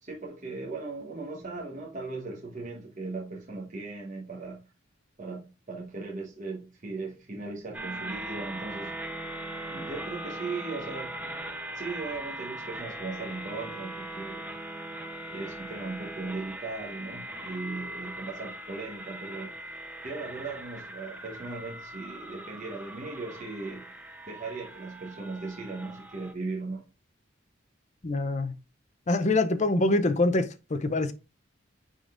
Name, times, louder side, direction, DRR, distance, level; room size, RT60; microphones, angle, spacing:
voice 1, 0.0-4.6 5.2-9.0 9.7-11.1 11.7-14.5 15.3-19.5 20.0-23.9 24.3-26.8, right 3 dB, 40° right, 1.1 m, -38 dB
sound 1, 7.7-26.3, right 1 dB, 10° right, 0.7 m, -40 dB
voice 2, 28.0-28.5 29.1-31.1, left 2 dB, 35° left, 0.6 m, -25 dB
9.7 x 3.8 x 2.5 m
head